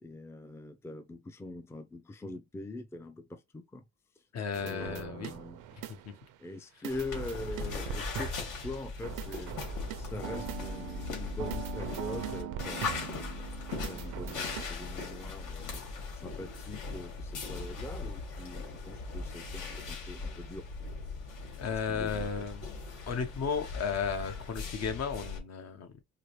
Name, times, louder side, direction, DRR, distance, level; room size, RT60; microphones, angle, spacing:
voice 1, 0.0-3.8 4.6-5.6 6.4-9.5 10.0-13.5 13.9-15.8 16.1-20.7 21.9-22.3, left 2 dB, 10° left, 0.5 m, -43 dB
voice 2, 4.3-5.3 5.9-6.1 6.8-6.9 21.6-22.7 23.1-26.0, left 6 dB, 60° left, 1.0 m, -34 dB
sound 1, 4.5-6.3 6.8-8.6 9.0-14.7, right 11 dB, 90° right, 0.6 m, -42 dB
sound 2, 6.9-25.4, left 4 dB, 80° left, 1.9 m, -39 dB
4.8 x 2.0 x 3.1 m
cardioid pair, 90°, 30 cm